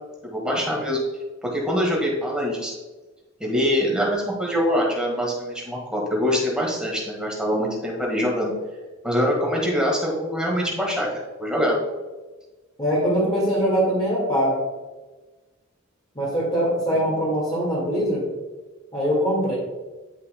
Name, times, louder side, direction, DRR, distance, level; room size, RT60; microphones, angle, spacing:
voice 1, 0.2-1.0 1.4-2.7 3.4-8.5 9.0-11.8 17.1-17.2, equal, 5° right, -2 dB, 1.6 m, -24 dB
voice 2, 12.8-14.6 16.1-18.3 18.9-19.6, equal, 25° left, -7 dB, 1.8 m, -22 dB
10.5 x 5.4 x 2.2 m, 1.2 s
head